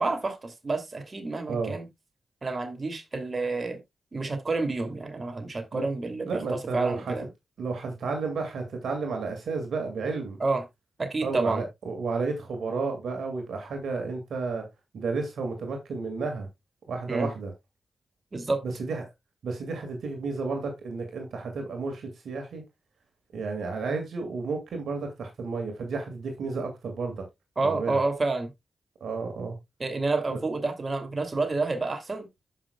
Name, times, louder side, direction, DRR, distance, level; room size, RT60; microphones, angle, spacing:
voice 1, 0.0-1.9 2.4-3.8 4.1-6.4 6.7-7.3 10.4-10.6 11.0-11.6 17.1-17.3 18.3-18.6 27.6-28.5 29.8-32.3, right 3 dB, 45° right, 2.5 m, -29 dB
voice 2, 6.3-7.1 7.6-10.4 11.2-14.7 14.9-16.5 16.9-17.5 18.6-19.1 19.4-22.6 23.3-27.2 27.6-28.0 29.0-29.6 30.3-30.4, right 4 dB, 80° right, 2.0 m, -32 dB
14.5 x 5.9 x 2.3 m
supercardioid pair, 40°, 0 cm